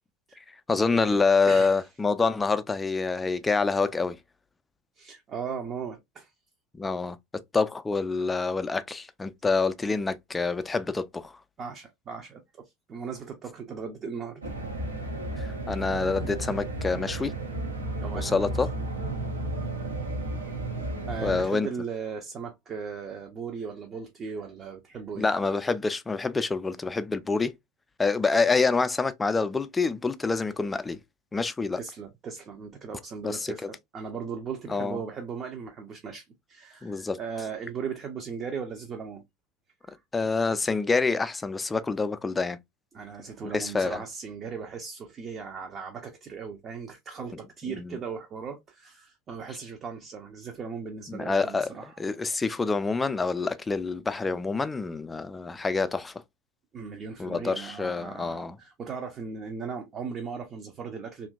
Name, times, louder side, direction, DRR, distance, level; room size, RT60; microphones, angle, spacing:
voice 1, 0.5-4.2 6.7-11.4 15.4-17.3 18.1-18.7 21.2-21.7 25.2-27.5 28.0-31.0 31.3-31.8 33.2-33.7 34.7-35.0 36.8-37.2 40.1-42.6 43.5-44.0 47.7-48.0 51.1-51.7 52.0-56.2 57.2-58.6, left 4 dB, 15° left, 0.3 m, -27 dB
voice 2, 1.5-1.8 5.0-6.3 11.6-14.4 14.8-14.9 18.0-18.3 21.1-25.3 31.8-33.6 33.9-39.2 39.8-40.0 42.9-52.0 56.7-61.3, right 6 dB, 35° right, 0.6 m, -37 dB
sound 1, 14.4-21.5, right 2 dB, 90° right, 0.8 m, -33 dB
2.8 x 2.5 x 2.3 m
figure-of-eight pair, 80°, 0 cm